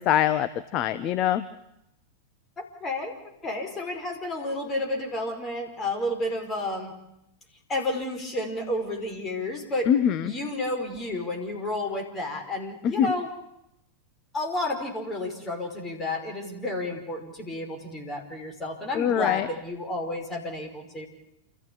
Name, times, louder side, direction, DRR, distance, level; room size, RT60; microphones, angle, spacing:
voice 1, 0.0-1.4 9.9-10.3 12.8-13.1 18.9-19.5, left 10 dB, 35° left, 12 dB, 0.9 m, -23 dB
voice 2, 2.8-3.1 3.4-7.0 7.7-9.9 10.2-13.3 14.3-21.1, left 1 dB, 20° left, 3 dB, 5.3 m, -31 dB
28.5 x 14.5 x 8.5 m, 0.83 s
figure-of-eight pair, 90°, 0 cm